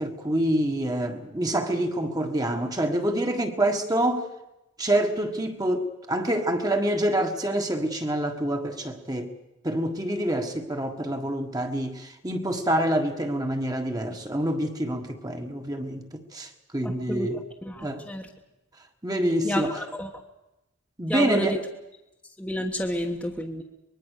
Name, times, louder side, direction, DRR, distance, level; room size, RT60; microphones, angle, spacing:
voice 1, 0.0-4.3 4.8-9.3 9.6-17.4 17.8-18.0 19.0-19.7 21.0-21.5, right 1 dB, 20° right, 4 dB, 1.7 m, -26 dB
voice 2, 16.8-18.3 19.4-20.1 21.1-21.6 22.4-23.6, equal, 5° left, 0 dB, 1.3 m, -30 dB
24.5 x 21.0 x 6.7 m, 0.96 s
head